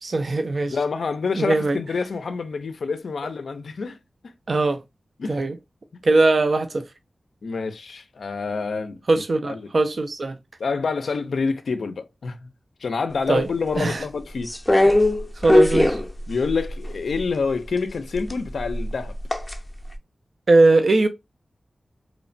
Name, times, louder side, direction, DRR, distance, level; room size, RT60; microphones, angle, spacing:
voice 1, 0.0-0.8 1.4-1.8 4.5-4.8 5.3-5.6 6.0-6.8 9.1-10.4 13.3-13.5 13.8-14.0 15.4-16.0 20.5-21.1, right 2 dB, 65° right, 0.4 m, -20 dB
voice 2, 0.7-4.0 5.2-5.4 7.4-9.0 9.4-9.7 10.6-12.5 12.8-14.5 14.8-14.9 16.3-19.2, left 4 dB, 80° left, 0.4 m, -27 dB
sound 1, 14.5-17.2 18.1-19.6 19.9-20.0, left 1 dB, 20° left, 0.5 m, -20 dB
2.9 x 2.1 x 2.4 m
cardioid pair, 45°, 0 cm